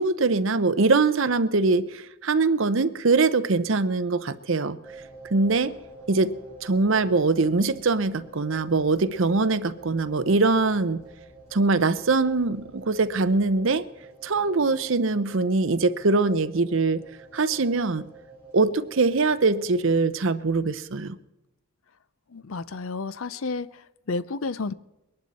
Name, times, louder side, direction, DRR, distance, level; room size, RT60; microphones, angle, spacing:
voice 1, 0.0-4.8 5.3-5.8 6.1-6.4 6.6-11.0 11.5-13.9 14.2-17.0 17.3-18.1 18.5-21.2, right 3 dB, 60° right, 12 dB, 0.7 m, -22 dB
sound 1, 4.8-20.0, right 2 dB, 15° left, 6.0 m, -48 dB
voice 2, 22.3-24.7, left 3 dB, 65° left, 16 dB, 0.6 m, -31 dB
22.0 x 11.5 x 4.3 m, 0.94 s
head